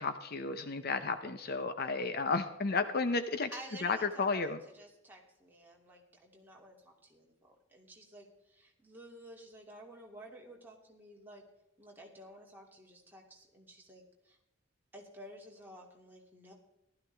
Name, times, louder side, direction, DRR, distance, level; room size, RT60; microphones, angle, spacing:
voice 1, 0.0-3.5 3.8-4.6, left 4 dB, 50° left, 10 dB, 0.7 m, -33 dB
voice 2, 3.5-11.4 11.8-14.4 14.9-16.5, right 1 dB, 10° right, -2 dB, 2.6 m, -52 dB
15.0 x 13.0 x 3.4 m, 0.86 s
head